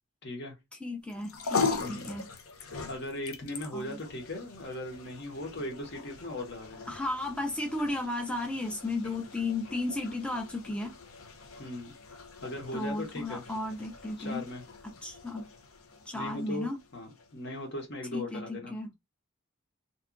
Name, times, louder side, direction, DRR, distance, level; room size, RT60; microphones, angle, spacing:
voice 1, 0.2-0.5 1.8-2.1 2.6-6.9 11.6-11.9 12.4-13.4 14.2-14.6 16.1-16.7 16.9-18.7, left 1 dB, 55° left, 1.0 m, -38 dB
voice 2, 0.8-2.3 3.7-4.0 6.9-10.9 12.7-14.4 14.8-15.5 16.1-16.8 18.1-18.9, left 2 dB, 5° left, 0.4 m, -34 dB
sound 1, 1.1-17.6, left 4 dB, 90° left, 0.6 m, -40 dB
2.8 x 2.3 x 2.4 m
head